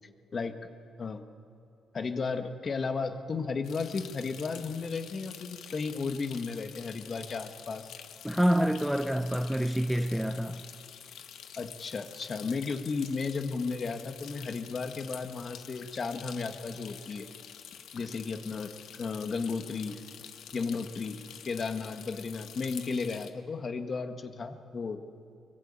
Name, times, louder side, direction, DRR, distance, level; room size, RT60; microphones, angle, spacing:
voice 1, 1.9-7.9 11.5-17.3 17.9-20.0 20.5-25.0, left 4 dB, 40° left, 1.7 m, -34 dB
sound 1, 3.6-23.3, left 9 dB, 75° left, 1.3 m, -48 dB
voice 2, 8.2-10.6, equal, ahead, 0.8 m, -27 dB
23.0 x 21.0 x 9.0 m
cardioid pair, 90°, 0 cm